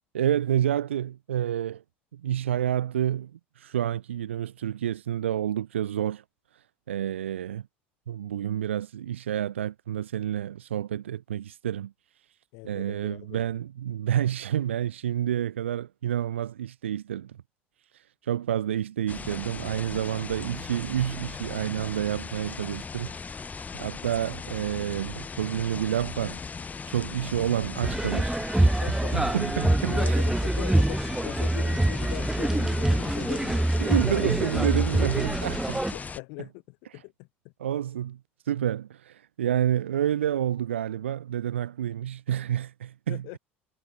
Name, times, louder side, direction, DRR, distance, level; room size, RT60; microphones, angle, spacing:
voice 1, 0.1-1.8 2.1-6.2 6.9-7.6 8.1-11.9 12.6-17.4 18.2-23.1 23.7-26.4 26.9-28.7 29.1-30.2 33.8-35.8 37.6-38.2 38.5-43.2, right 10 dB, 75° right, 1.3 m, -29 dB
voice 2, 12.5-13.5 28.6-34.2 35.9-37.5 43.1-43.4, left 36 dB, 60° left, 1.5 m, -41 dB
sound 1, 19.1-36.2, left 5 dB, 25° left, 3.7 m, -38 dB
sound 2, 27.8-35.9, right 1 dB, 5° right, 0.9 m, -25 dB
figure-of-eight pair, 70°, 7 cm